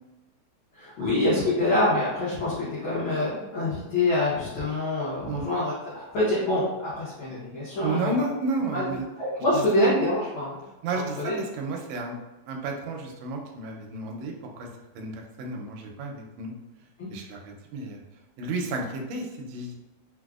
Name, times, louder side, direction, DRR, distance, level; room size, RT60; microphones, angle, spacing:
voice 1, 0.7-8.3 8.7-8.9 9.2-10.6 10.9-11.3 17.0-17.1, left 1 dB, 75° left, -9 dB, 1.1 m, -26 dB
voice 2, 7.8-9.1 9.5-9.6 10.8-12.2 12.5-14.7 14.9-16.5 17.1-18.0 18.4-19.8, right 3 dB, 80° right, 2 dB, 1.6 m, -32 dB
4.7 x 2.1 x 2.3 m, 1.1 s
omnidirectional pair, 3.3 m